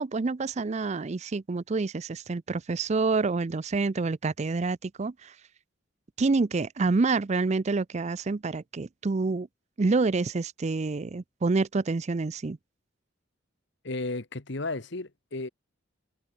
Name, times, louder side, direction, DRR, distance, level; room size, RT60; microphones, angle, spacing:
voice 1, 0.0-5.3 6.2-9.5 9.8-12.6, right 3 dB, 35° right, 0.5 m, -27 dB
voice 2, 13.8-15.5, left 2 dB, 65° left, 1.5 m, -33 dB
head